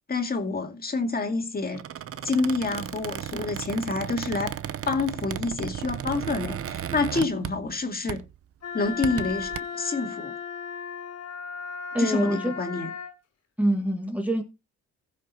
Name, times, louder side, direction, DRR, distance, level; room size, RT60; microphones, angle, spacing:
voice 1, 0.1-1.8 2.2-4.5 4.9-8.2 8.7-10.3 12.0-12.9, left 3 dB, 30° left, 2.3 m, -28 dB
Squeak, 1.7-7.8 8.1-8.4 8.8-9.6, right 9 dB, 50° right, 0.7 m, -35 dB
Wind instrument woodwind instrument, 8.6-13.2, left 6 dB, 55° left, 2.4 m, -36 dB
voice 2, 11.9-12.6 13.6-14.4, right 1 dB, 5° right, 1.8 m, -25 dB
15.0 x 6.5 x 4.3 m
cardioid pair, 90°, 30 cm